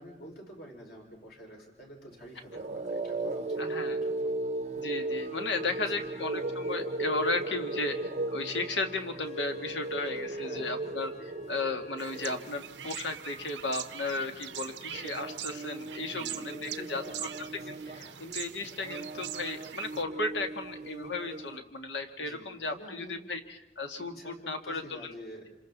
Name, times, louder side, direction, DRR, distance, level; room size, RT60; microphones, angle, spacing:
voice 1, 0.0-4.2 5.5-6.1 10.3-11.0 16.0-18.2 22.2-23.2 24.0-25.4, equal, 60° left, -1 dB, 5.3 m, -48 dB
sound 1, 2.2-21.6, right 2 dB, 40° right, 0.7 m, -37 dB
voice 2, 3.6-4.0 4.8-11.1 11.5-17.0 17.4-25.1, left 3 dB, 80° left, 5 dB, 1.9 m, -35 dB
sound 2, 4.6-15.6, right 1 dB, 35° left, 4.4 m, -56 dB
sound 3, 12.0-20.0, right 11 dB, 75° right, 0.7 m, -42 dB
27.0 x 26.5 x 4.1 m, 0.91 s
head